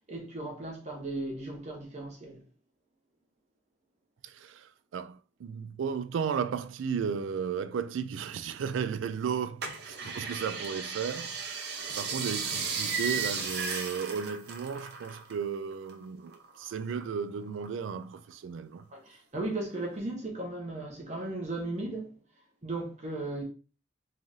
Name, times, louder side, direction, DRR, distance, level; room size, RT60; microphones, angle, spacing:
voice 1, 0.1-2.4 18.9-22.1 22.6-23.4, right 2 dB, 35° right, 1.0 m, -36 dB
voice 2, 4.2-11.7 12.0-18.8, right 6 dB, 85° right, 0.3 m, -34 dB
sound 1, 9.6-15.5 15.7-17.0 17.5-18.3 18.8-18.9, right 5 dB, 60° right, 0.7 m, -35 dB
3.6 x 3.2 x 2.6 m
head